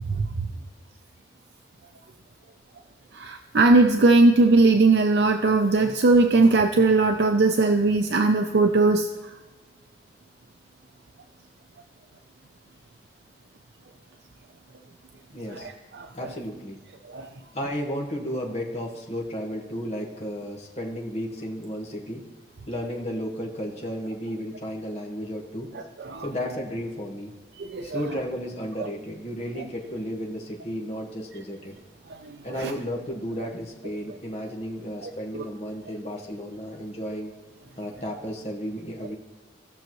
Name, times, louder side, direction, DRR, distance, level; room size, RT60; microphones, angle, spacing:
voice 1, 3.2-9.1 15.9-16.1 17.1-17.3 26.1-26.2 27.7-28.0 32.6-32.7, right 3 dB, 70° right, 5 dB, 0.5 m, -19 dB
voice 2, 15.3-15.7 16.1-16.8 17.5-22.2 22.7-25.7 26.2-27.3 27.8-31.7 32.4-37.3 37.8-39.1, equal, 35° left, 0 dB, 1.4 m, -33 dB
17.0 x 6.4 x 3.1 m, 1.3 s
head